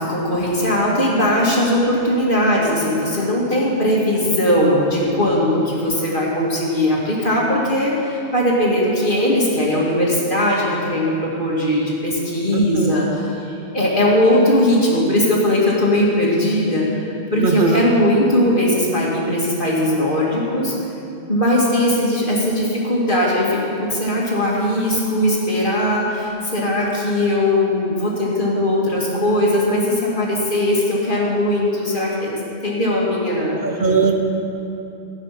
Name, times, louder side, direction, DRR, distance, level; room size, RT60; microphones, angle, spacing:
voice 1, 0.0-20.7 21.3-33.6, left 1 dB, 50° left, -4 dB, 2.7 m, -19 dB
voice 2, 12.5-12.9 17.4-17.8 33.6-34.1, right 4 dB, 55° right, 4 dB, 0.9 m, -18 dB
16.0 x 8.8 x 6.0 m, 2.7 s
omnidirectional pair, 1.1 m